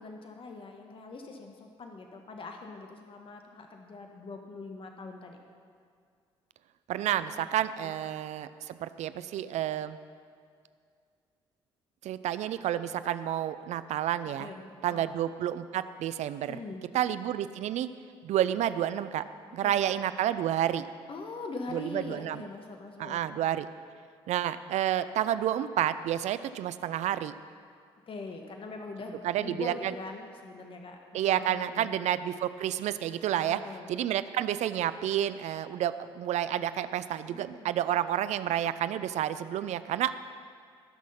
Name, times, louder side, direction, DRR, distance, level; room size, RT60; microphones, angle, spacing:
voice 1, 0.0-5.4 7.3-7.5 7.8-7.9 14.4-15.1 16.5-16.8 19.6-19.8 21.1-23.4 28.1-31.9 33.4-33.9 37.3-37.7, left 3 dB, 40° left, 3 dB, 1.3 m, -43 dB
voice 2, 6.9-10.0 12.0-14.5 14.8-16.6 16.9-17.9 18.2-19.2 19.5-20.8 21.7-22.4 23.0-23.7 24.3-27.3 29.2-29.9 31.1-33.6 33.9-40.1, right 11 dB, 60° right, 14 dB, 0.5 m, -30 dB
18.5 x 6.3 x 5.7 m, 2.2 s
hypercardioid pair, 50°, 13 cm